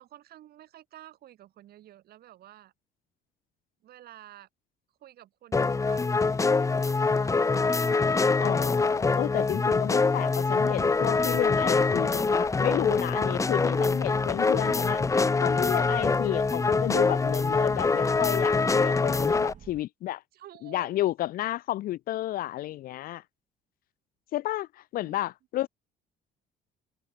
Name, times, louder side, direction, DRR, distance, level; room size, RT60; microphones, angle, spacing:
voice 1, 0.0-2.7 3.8-4.5 5.0-7.8 20.3-20.9 25.0-25.3, right 13 dB, 65° right, 3.9 m, -51 dB
sound 1, 5.5-19.5, left 4 dB, 20° left, 0.9 m, -24 dB
voice 2, 8.4-15.0 15.4-20.2 20.6-23.2 24.3-25.7, left 14 dB, 60° left, 0.4 m, -31 dB
sound 2, 10.6-19.8, right 8 dB, 50° right, 5.3 m, -50 dB
cardioid pair, 110°, 17 cm